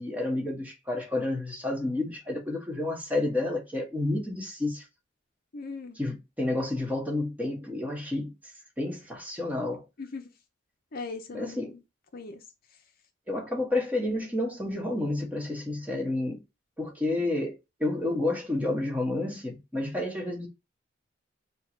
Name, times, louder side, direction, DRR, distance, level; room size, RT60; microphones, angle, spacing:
voice 1, 0.0-4.8 6.0-8.3 8.8-9.8 11.3-11.7 13.3-16.4 16.8-20.5, left 2 dB, 10° right, 1.3 m, -30 dB
voice 2, 5.5-6.0 10.0-10.3 10.9-11.8 12.1-12.4, left 4 dB, 50° left, 0.6 m, -39 dB
4.5 x 2.3 x 4.4 m
head